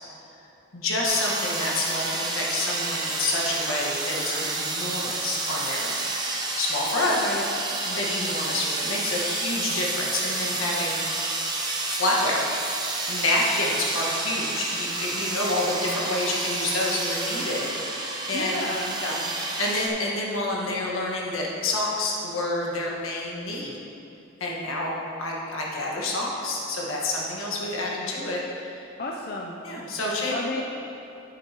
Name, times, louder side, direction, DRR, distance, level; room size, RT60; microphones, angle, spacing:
voice 1, 0.7-6.0 6.6-7.2 7.9-11.0 11.9-12.5 12.9-18.5 19.0-23.7 24.4-28.8 29.6-30.6, left 2 dB, 85° left, -3 dB, 1.5 m, -28 dB
sound 1, 1.0-19.9, right 2 dB, 20° right, 0.6 m, -30 dB
voice 2, 7.0-7.4 18.3-19.0 29.0-29.6 30.3-30.6, left 2 dB, 45° left, -1 dB, 0.5 m, -32 dB
9.7 x 7.6 x 3.0 m, 2.8 s
head